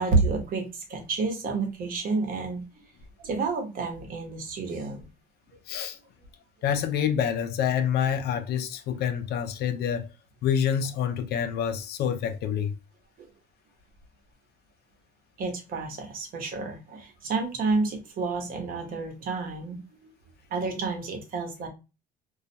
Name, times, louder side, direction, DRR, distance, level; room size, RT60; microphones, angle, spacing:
voice 1, 0.0-2.8 3.2-5.1 15.4-20.1 20.5-21.7, right 4 dB, 60° right, 0.9 m, -29 dB
voice 2, 5.7-6.0 6.6-10.1 10.4-12.7, left 8 dB, 70° left, 0.5 m, -27 dB
2.3 x 2.0 x 2.6 m
cardioid pair, 110°, 17 cm